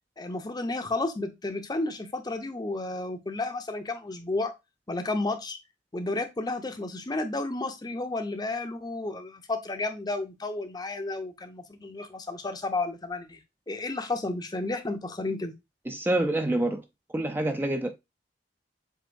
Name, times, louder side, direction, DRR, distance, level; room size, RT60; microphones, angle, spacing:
voice 1, 0.2-4.5 4.9-5.6 5.9-13.4 13.7-15.5, left 2 dB, 25° left, 0.7 m, -32 dB
voice 2, 15.9-16.8 17.1-17.9, right 1 dB, 10° right, 0.4 m, -26 dB
7.6 x 2.7 x 2.5 m
head